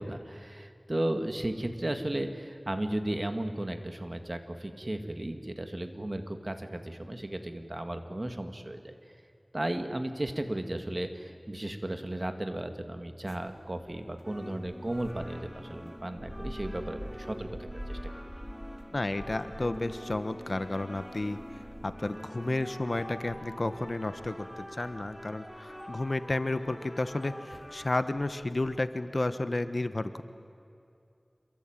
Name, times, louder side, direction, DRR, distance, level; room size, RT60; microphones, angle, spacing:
voice 1, 0.0-9.0 9.5-18.0, right 1 dB, 40° right, 7 dB, 2.3 m, -35 dB
sound 1, 13.3-26.4 27.1-27.2 27.5-27.7 28.1-28.8, equal, 10° right, 2.8 m, -47 dB
sound 2, 14.2-27.9, equal, 5° left, 1.4 m, -45 dB
voice 2, 18.9-21.4 21.8-30.2, left 2 dB, 55° left, 11 dB, 1.2 m, -32 dB
27.0 x 23.0 x 9.1 m, 2.5 s
wide cardioid pair, 45°, 0 cm